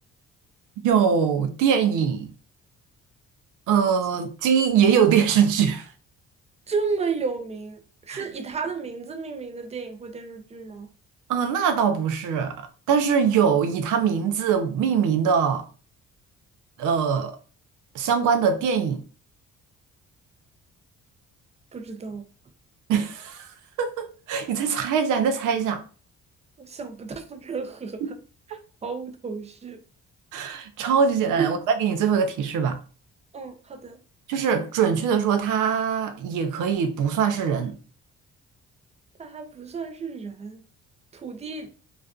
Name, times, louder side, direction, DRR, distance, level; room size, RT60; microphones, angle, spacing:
voice 1, 0.8-2.3 3.7-5.9 8.1-8.2 11.3-15.6 16.8-17.4 17.9-19.0 22.9-23.5 23.8-25.8 30.3-32.8 34.3-37.7, right 7 dB, 85° right, 0.5 m, -22 dB
voice 2, 6.7-7.8 8.1-10.9 21.7-22.2 26.6-28.0 28.8-29.8 31.4-31.5 33.3-34.0 39.2-40.6 41.2-41.7, right 5 dB, 20° right, 0.4 m, -32 dB
2.5 x 2.3 x 2.3 m
cardioid pair, 90°, 30 cm